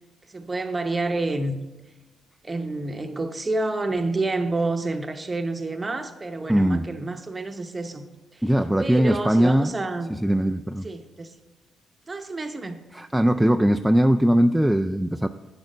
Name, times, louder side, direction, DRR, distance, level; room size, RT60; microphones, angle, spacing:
voice 1, 0.3-1.6 2.4-8.1 8.3-8.4 8.8-10.1 10.8-11.3 12.1-12.8, right 2 dB, 25° right, 7 dB, 0.8 m, -28 dB
voice 2, 6.5-6.9 8.4-9.7 10.1-10.9 12.9-15.3, equal, 5° right, 5 dB, 0.3 m, -20 dB
9.6 x 6.3 x 5.0 m, 1.1 s
cardioid pair, 90°, 0 cm